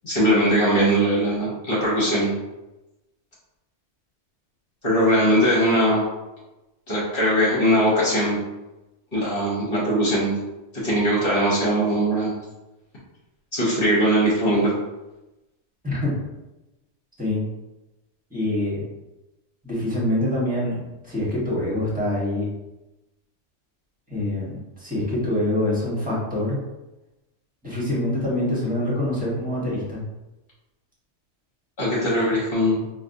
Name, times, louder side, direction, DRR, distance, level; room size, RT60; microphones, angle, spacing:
voice 1, 0.0-2.3 4.8-6.0 6.9-8.4 9.1-10.3 10.7-12.3 13.5-14.7 31.8-32.8, equal, 50° left, -6 dB, 1.2 m, -20 dB
voice 2, 15.8-16.1 17.2-17.4 18.3-18.8 19.6-22.5 24.1-26.6 27.6-30.0, left 1 dB, 5° right, -7 dB, 1.1 m, -25 dB
5.0 x 2.3 x 2.6 m, 0.99 s
omnidirectional pair, 1.2 m